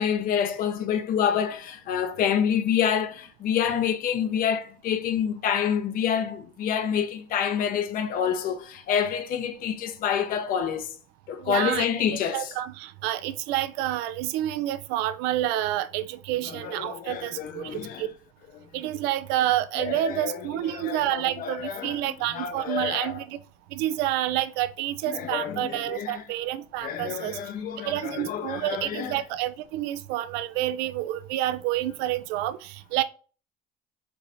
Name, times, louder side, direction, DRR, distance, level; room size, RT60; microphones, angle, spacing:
voice 1, 0.0-10.9 11.3-12.5 16.5-18.1 18.6-18.7 19.8-23.1 25.1-26.2 26.8-29.2, left 8 dB, 60° left, 0.7 m, -28 dB
voice 2, 11.4-18.1 18.7-23.4 23.7-27.4 27.8-33.0, right 13 dB, 90° right, 0.4 m, -29 dB
4.5 x 2.6 x 3.4 m
cardioid pair, 120°, 16 cm